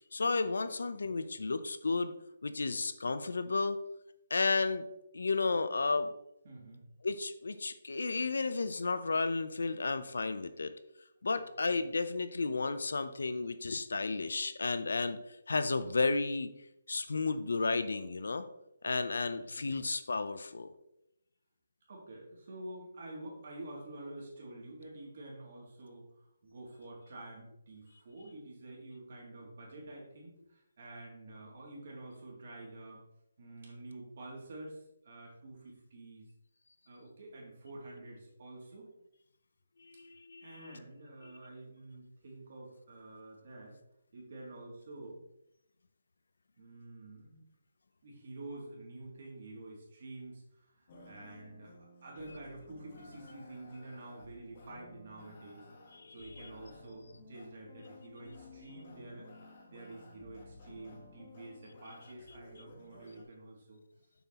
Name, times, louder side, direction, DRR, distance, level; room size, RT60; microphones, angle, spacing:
voice 1, 0.1-2.1 2.4-3.8 4.3-4.9 5.1-6.1 7.0-10.7 11.2-15.2 15.5-16.5 16.9-18.5 18.8-20.7 39.9-40.5 55.9-56.5, left 3 dB, 85° left, 11 dB, 0.6 m, -32 dB
voice 2, 6.4-6.8 11.3-11.4 19.2-19.8 21.9-33.0 33.4-36.3 36.9-38.9 40.4-43.8 44.1-45.2 46.6-47.4 48.0-55.7 56.1-63.8, right 2 dB, 45° right, -2 dB, 2.6 m, -49 dB
sound 1, 50.9-63.2, left 2 dB, 35° left, 1.3 m, -55 dB
7.1 x 5.6 x 2.9 m, 0.83 s
hypercardioid pair, 170°, 0 cm